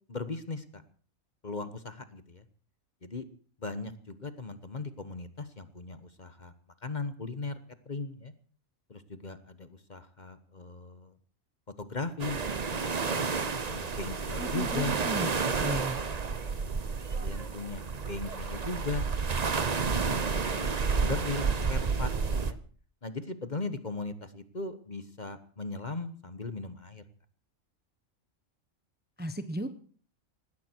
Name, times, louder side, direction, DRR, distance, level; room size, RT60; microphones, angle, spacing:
voice 1, 0.1-0.8 1.4-2.4 3.0-3.2 3.6-6.5 6.8-7.5 7.8-8.3 8.9-11.2 11.8-12.4 12.9-15.0 16.3-16.5 17.1-19.1 19.4-22.1 22.4-22.6 23.0-27.0, left 3 dB, 35° left, 11 dB, 1.3 m, -38 dB
sound 1, 12.2-22.5, right 5 dB, 35° right, 0.9 m, -30 dB
voice 2, 14.4-15.3 15.6-16.0 29.2-29.7, right 1 dB, 10° right, 10 dB, 0.9 m, -35 dB
19.5 x 16.0 x 4.6 m, 0.43 s
omnidirectional pair, 1.4 m